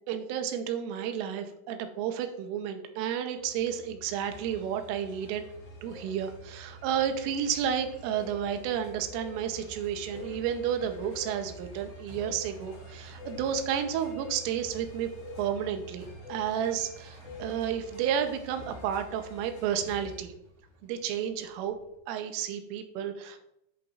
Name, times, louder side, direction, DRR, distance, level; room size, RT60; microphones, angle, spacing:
voice 1, 0.1-5.4 5.8-15.1 15.4-20.3 20.8-21.8 22.1-23.4, right 8 dB, 90° right, 7 dB, 3.4 m, -31 dB
sound 1, 3.4-22.0, right 3 dB, 55° right, 1.9 m, -51 dB
sound 2, 4.2-20.2, left 2 dB, 45° left, 4.1 m, -52 dB
sound 3, 7.1-7.3 8.1-8.3 9.1-9.3 10.1-10.3 11.1-11.3 12.2-12.4 13.2-13.4 14.2-14.4 15.2-15.4 16.2-16.4 17.2-17.5, left 9 dB, 80° left, 3.9 m, -44 dB
8.9 x 7.7 x 2.4 m, 0.79 s
omnidirectional pair, 5.6 m